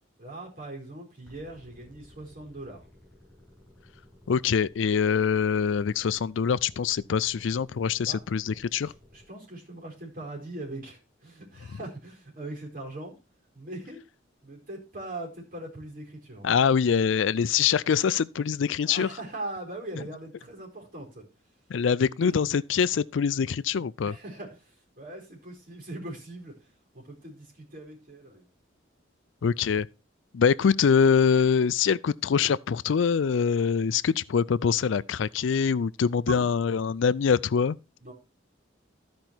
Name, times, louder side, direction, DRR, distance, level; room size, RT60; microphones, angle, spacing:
voice 1, 0.2-2.9 8.0-8.2 8.8-13.1 13.5-14.0 14.4-16.6 18.8-21.3 22.2-22.4 23.8-28.5 36.3-36.5 38.0-38.1, right 2 dB, 45° right, 4.4 m, -41 dB
sound 1, 1.2-9.2, left 1 dB, 5° left, 6.8 m, -56 dB
voice 2, 4.3-8.9 16.4-19.1 21.7-24.2 29.4-29.9 30.3-37.8, left 6 dB, 75° left, 0.4 m, -24 dB
13.5 x 5.3 x 4.5 m
head